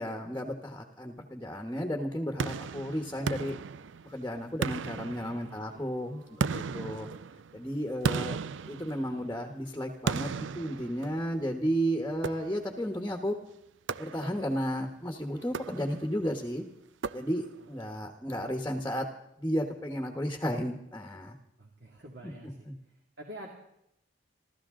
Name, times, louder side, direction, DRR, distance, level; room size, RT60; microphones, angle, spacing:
voice 1, 0.0-3.6 4.1-6.2 6.5-7.1 7.5-8.4 8.7-13.4 14.0-16.6 17.1-19.1 19.4-21.3 22.2-22.3 22.7-22.8, equal, 10° left, 4 dB, 1.3 m, -33 dB
sound 1, 2.4-4.2 4.6-5.8 6.4-9.4 10.1-11.5 12.2-12.9 13.9-14.6 15.4-16.2 17.0-17.7, right 5 dB, 80° right, 0.5 m, -35 dB
voice 2, 5.4-6.8 17.9-18.0 21.6-23.5, equal, 60° right, 0 dB, 2.4 m, -49 dB
28.0 x 13.0 x 3.8 m, 0.79 s
head